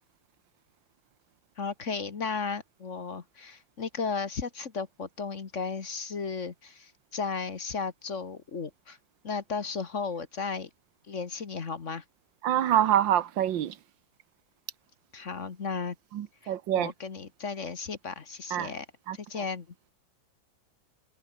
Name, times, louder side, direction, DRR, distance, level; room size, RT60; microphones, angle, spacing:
voice 1, 1.6-9.0 9.2-10.7 11.1-12.0 15.1-16.0 16.4-18.8 19.1-19.7, left 5 dB, 45° left, 1.7 m, -35 dB
voice 2, 12.4-13.8 16.1-16.9 18.5-18.7 19.1-19.2, right 11 dB, 85° right, 1.8 m, -26 dB
omnidirectional pair, 2.0 m